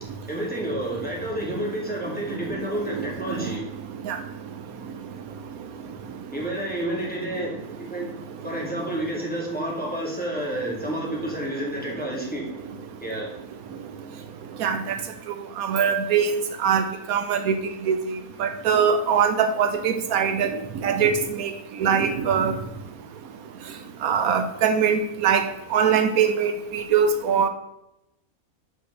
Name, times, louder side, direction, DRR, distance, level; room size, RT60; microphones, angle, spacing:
voice 1, 0.0-3.7 6.3-8.1 8.4-12.5 13.0-13.3, right 1 dB, 5° left, -4 dB, 2.2 m, -30 dB
voice 2, 2.9-3.5 4.0-4.2 14.6-15.0 15.6-17.6 17.9-20.5 20.8-22.6 24.0-27.5, right 7 dB, 80° right, 8 dB, 1.1 m, -22 dB
6.0 x 5.0 x 6.3 m, 0.85 s
omnidirectional pair, 1.5 m